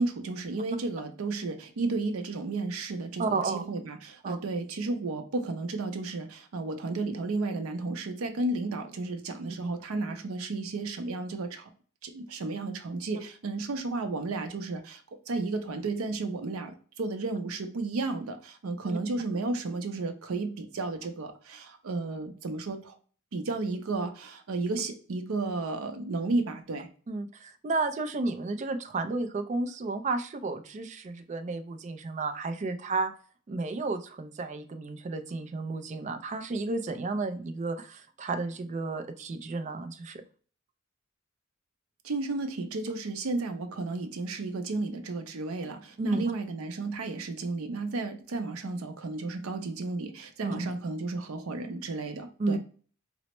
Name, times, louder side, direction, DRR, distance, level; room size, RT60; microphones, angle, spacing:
voice 1, 0.0-11.7 12.0-23.0 23.3-26.9 42.0-52.6, right 3 dB, 85° right, 0.5 m, -33 dB
voice 2, 3.2-3.6 4.2-4.4 9.6-9.7 18.8-19.0 27.1-33.1 33.5-40.2 46.0-46.2 50.4-50.7 52.4-52.6, right 3 dB, 35° right, 0.3 m, -32 dB
4.2 x 2.0 x 2.9 m
head